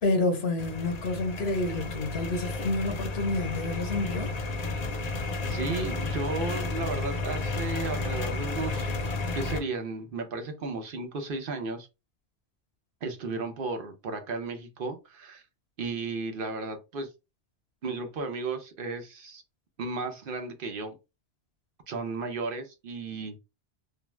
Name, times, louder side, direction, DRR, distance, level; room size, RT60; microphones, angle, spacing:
voice 1, 0.0-4.3, left 2 dB, 75° left, 1.0 m, -29 dB
sound 1, 0.6-9.6, left 3 dB, 50° left, 0.6 m, -32 dB
voice 2, 5.5-8.9 9.3-11.9 13.0-15.4 15.8-17.1 17.8-19.4 19.8-21.0 21.9-23.4, right 3 dB, 60° right, 0.9 m, -34 dB
2.5 x 2.3 x 3.1 m
omnidirectional pair, 1.1 m